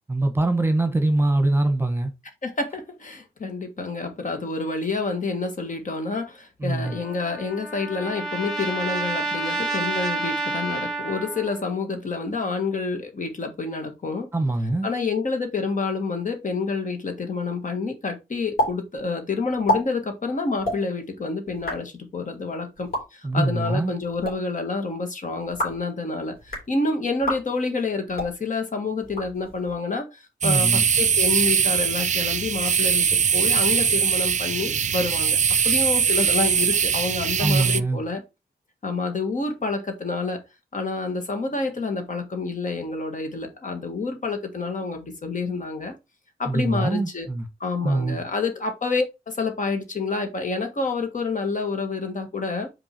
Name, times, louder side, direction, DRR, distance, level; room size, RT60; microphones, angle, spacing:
voice 1, 0.1-2.1 6.6-7.0 14.3-14.9 23.2-24.0 30.4-30.8 37.4-38.0 46.5-47.5 47.8-48.2, right 2 dB, 15° right, 1.3 m, -23 dB
voice 2, 2.4-14.3 14.8-35.4 35.6-38.2 38.8-40.4 40.7-45.9 46.4-47.3 47.6-52.7, left 3 dB, 55° left, 1.6 m, -28 dB
Trumpet, 6.8-11.6, right 2 dB, ahead, 2.1 m, -29 dB
sound 1, 18.6-18.7 19.0-19.1 19.5-19.8 20.6-20.8 21.5-21.8 22.8-23.0 24.0-24.3 25.4-25.8 26.4-26.7 27.2-27.4 28.1-28.3 29.0-29.7, equal, 75° left, 3.8 m, -27 dB
sound 2, 30.4-37.8, right 7 dB, 50° right, 0.4 m, -21 dB
5.3 x 4.8 x 4.5 m
wide cardioid pair, 80°, 16 cm